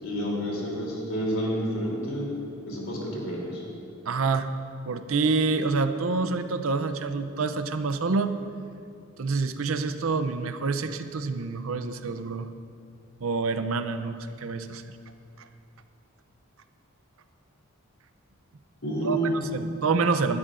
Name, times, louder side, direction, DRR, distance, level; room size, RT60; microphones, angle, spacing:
voice 1, 0.0-2.3 2.6-3.6 18.8-19.4, right 1 dB, 65° left, -3 dB, 3.2 m, -29 dB
voice 2, 4.1-4.5 4.9-8.3 9.2-12.5 13.2-14.8 15.4-15.5 19.0-20.4, right 4 dB, 70° right, 10 dB, 0.6 m, -27 dB
19.0 x 12.5 x 2.6 m, 2.4 s
head